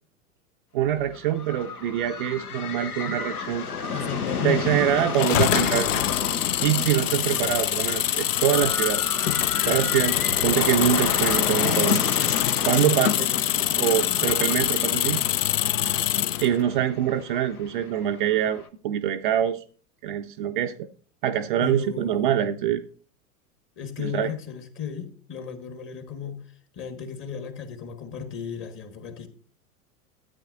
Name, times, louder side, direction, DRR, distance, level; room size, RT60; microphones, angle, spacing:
voice 1, 0.7-3.7 4.4-6.0 6.6-9.0 9.6-10.2 10.4-12.0 12.6-13.2 13.8-15.2 16.4-19.6 20.0-20.9 21.2-22.8 24.0-24.3, right 10 dB, 35° right, 0.4 m, -24 dB
sound 1, 1.0-18.7, left 5 dB, 80° left, 1.0 m, -32 dB
voice 2, 3.9-4.7 7.3-7.5 12.8-13.4 13.7-14.2 21.6-22.5 23.8-26.4 26.7-29.3, left 7 dB, 25° left, 1.4 m, -35 dB
sound 2, 5.1-16.5, left 12 dB, 60° left, 0.5 m, -24 dB
13.0 x 8.9 x 2.5 m
figure-of-eight pair, 95°, 45 cm